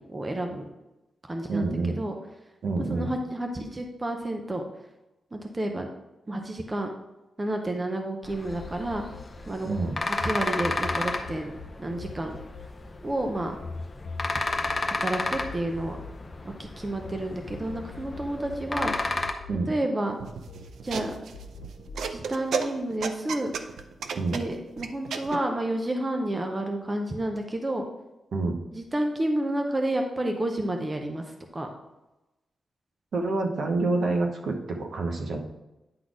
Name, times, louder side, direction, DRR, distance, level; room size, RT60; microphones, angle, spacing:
voice 1, 0.1-0.7 1.3-1.7 2.0-2.2 2.9-4.6 5.3-5.9 6.3-6.9 7.4-9.0 9.5-9.7 10.2-11.5 11.8-12.4 13.0-13.5 15.0-16.0 16.4-19.0 19.7-20.2 20.8-21.1 22.1-23.5 24.3-27.9 28.7-31.7, right 1 dB, 15° right, 3 dB, 0.6 m, -30 dB
voice 2, 1.5-2.0 2.6-3.1 9.6-9.9 19.5-19.7 24.1-24.4 28.3-28.6 33.1-35.4, right 3 dB, 60° right, 3 dB, 1.0 m, -27 dB
sound 1, 8.2-19.3, left 2 dB, 20° left, 0.6 m, -33 dB
sound 2, 8.5-10.3 10.6-17.2 17.5-20.2 20.5-22.1, left 4 dB, 90° left, 0.6 m, -42 dB
sound 3, 20.2-25.4, right 5 dB, 80° right, 0.6 m, -33 dB
9.6 x 4.1 x 4.9 m, 1.0 s
wide cardioid pair, 180°, 0 cm